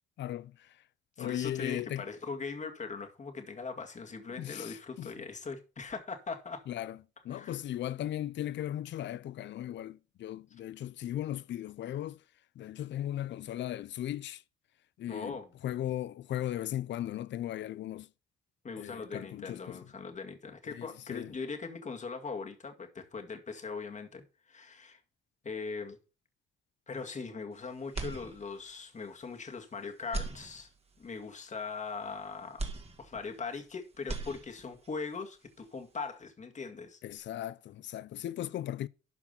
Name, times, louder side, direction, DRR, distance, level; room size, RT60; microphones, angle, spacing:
voice 1, 0.2-0.7 1.2-2.1 4.4-5.1 6.7-7.0 7.2-12.2 12.6-14.4 15.0-15.4 15.6-18.1 18.8-19.8 20.7-21.3 37.0-38.9, left 12 dB, 65° left, 0.6 m, -37 dB
voice 2, 1.2-6.7 7.3-7.6 15.1-15.5 18.6-25.0 25.4-26.0 26.9-30.7 31.0-32.7 33.0-37.0, left 4 dB, 35° left, 2.1 m, -40 dB
sound 1, 27.9-28.8 29.3-29.4 30.0-31.1 32.6-33.7 33.9-34.9, right 3 dB, 30° right, 2.3 m, -39 dB
12.5 x 4.8 x 5.5 m
cardioid pair, 90°, 20 cm